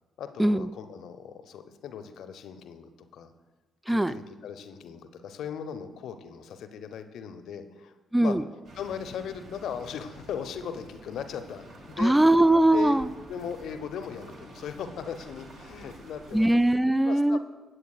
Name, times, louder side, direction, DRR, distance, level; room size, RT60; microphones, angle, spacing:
voice 1, 0.2-3.3 3.9-7.9 8.2-8.4 8.8-12.1 12.7-13.0 13.3-16.5 17.0-17.4, left 7 dB, 60° left, 9 dB, 0.6 m, -38 dB
voice 2, 8.1-8.4 12.0-13.1 16.3-17.4, right 1 dB, 10° right, 15 dB, 0.4 m, -21 dB
sound 1, 8.6-16.7, right 1 dB, 60° right, 1.5 m, -48 dB
17.5 x 8.0 x 2.4 m, 1.2 s
figure-of-eight pair, 40°, 0 cm